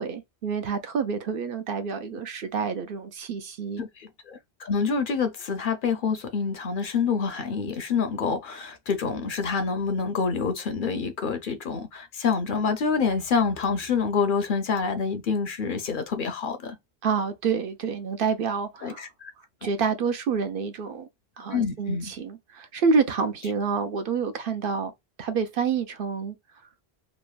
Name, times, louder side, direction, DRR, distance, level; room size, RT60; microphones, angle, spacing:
voice 1, 0.0-3.8 17.0-19.1 19.6-21.1 21.4-24.9 25.2-26.3, right 5 dB, 65° right, 0.7 m, -28 dB
voice 2, 3.8-16.8 18.8-19.3 21.5-22.1, left 5 dB, 60° left, 0.7 m, -27 dB
3.1 x 2.1 x 2.3 m
omnidirectional pair, 1.1 m